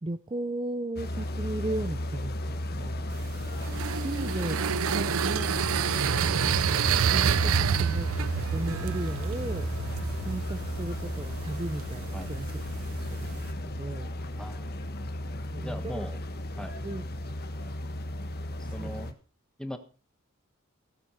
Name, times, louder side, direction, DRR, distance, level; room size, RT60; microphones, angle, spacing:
voice 1, 0.0-3.1 4.0-4.6 4.9-5.6 6.0-9.7 10.2-12.6 13.1-14.1 15.5-16.0 16.8-17.0 18.8-19.1, right 2 dB, 25° right, 11 dB, 0.5 m, -36 dB
sound 1, 1.0-19.1, left 1 dB, 45° left, 1.4 m, -34 dB
sound 2, 3.1-13.5, right 7 dB, 75° right, 0.5 m, -29 dB
voice 2, 15.6-16.2 16.6-16.7 18.7-19.1 19.6-19.8, equal, 5° left, 8 dB, 1.3 m, -38 dB
16.5 x 8.0 x 5.6 m, 0.39 s
head